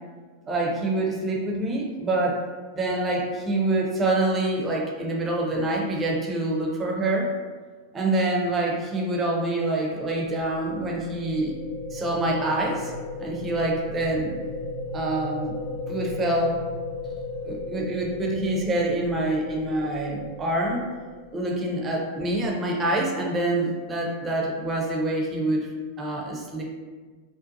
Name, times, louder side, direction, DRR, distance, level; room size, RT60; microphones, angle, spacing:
voice 1, 0.5-2.4 2.7-7.3 7.9-11.6 11.9-12.9 13.2-14.4 14.9-15.6 15.9-16.7 17.4-20.8 21.3-25.7 26.0-26.6, right 2 dB, 20° right, -1 dB, 0.4 m, -26 dB
sound 1, 9.5-21.7, left 2 dB, 75° left, 0.7 m, -36 dB
2.5 x 2.1 x 2.5 m, 1.5 s
figure-of-eight pair, 90°, 0 cm